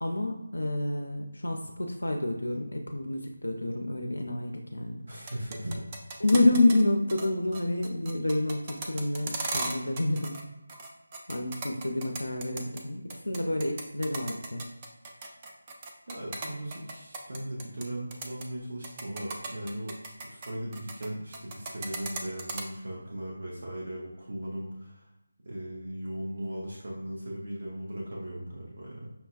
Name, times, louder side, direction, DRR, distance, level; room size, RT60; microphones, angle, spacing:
voice 1, 0.0-5.0 6.2-10.4 11.3-14.6, left 2 dB, 80° left, 2 dB, 0.4 m, -28 dB
voice 2, 5.0-5.8 16.1-25.0 25.4-29.1, right 1 dB, 55° right, -5 dB, 0.7 m, -38 dB
sound 1, 5.1-6.8 7.1-7.3 7.5-10.4 10.7-12.8 13.1-17.8 18.1-18.4 18.8-21.1 21.3-22.6, right 3 dB, 25° right, 0.4 m, -37 dB
5.5 x 2.2 x 2.4 m, 0.95 s
figure-of-eight pair, 160°, 0 cm